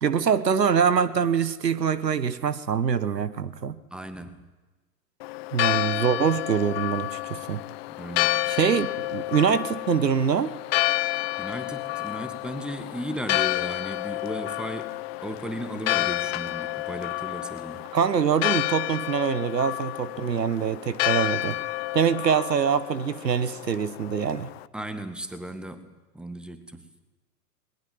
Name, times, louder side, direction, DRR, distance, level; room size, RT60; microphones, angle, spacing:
voice 1, 0.0-3.8 5.5-7.6 8.5-10.5 17.9-21.6 21.9-24.5, right 7 dB, 85° right, 1.3 m, -24 dB
voice 2, 3.9-4.4 8.0-8.6 11.4-15.0 15.2-17.9 24.7-26.9, equal, ahead, 1.8 m, -36 dB
Church bell, 5.2-24.6, left 19 dB, 40° left, 0.7 m, -30 dB
21.0 x 19.5 x 9.5 m
hypercardioid pair, 110°, 48 cm